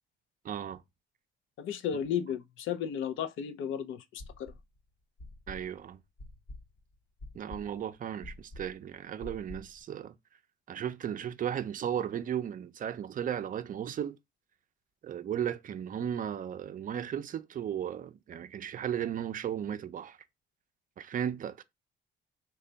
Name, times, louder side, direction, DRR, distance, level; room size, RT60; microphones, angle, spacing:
voice 1, 0.4-0.8 5.5-6.0 7.3-10.1 10.7-14.2 15.0-20.2 21.0-21.6, right 9 dB, 45° right, 0.4 m, -35 dB
voice 2, 1.6-4.5, left 8 dB, 80° left, 0.5 m, -34 dB
sound 1, 4.2-4.8 5.2-9.8, left 1 dB, 50° left, 0.9 m, -47 dB
3.3 x 2.2 x 3.8 m
cardioid pair, 90°, 20 cm